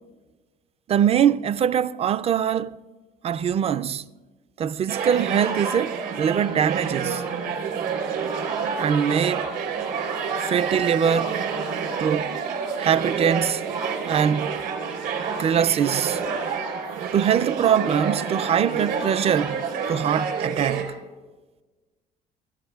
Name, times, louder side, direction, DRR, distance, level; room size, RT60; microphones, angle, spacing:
voice 1, 0.9-2.8 3.2-4.0 4.6-7.2 8.8-9.5 10.5-11.4 12.0-12.3 12.8-13.6 14.0-14.5 15.4-16.2 17.1-19.6 19.9-20.9, right 8 dB, 35° right, 0.4 m, -22 dB
sound 1, 4.9-20.8, right 6 dB, 75° right, 3.5 m, -28 dB
26.0 x 13.5 x 2.3 m
cardioid pair, 110°, 17 cm